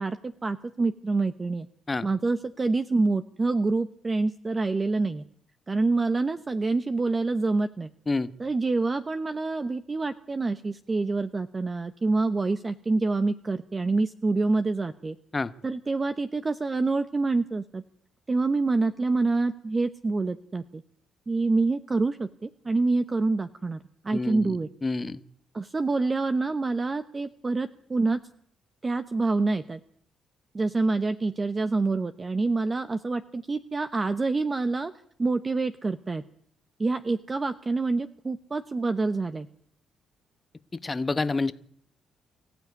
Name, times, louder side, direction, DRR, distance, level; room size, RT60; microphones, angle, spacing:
voice 1, 0.0-1.7 2.0-5.2 5.7-7.9 8.4-15.2 15.6-17.8 18.3-20.8 21.3-24.7 25.5-28.2 28.8-29.8 30.5-34.9 35.2-36.2 36.8-39.5, right 3 dB, 25° right, 10 dB, 1.0 m, -26 dB
voice 2, 24.1-25.2 40.8-41.5, left 3 dB, 25° left, 13 dB, 1.1 m, -28 dB
24.0 x 15.0 x 9.6 m, 0.65 s
cardioid pair, 90°, 0 cm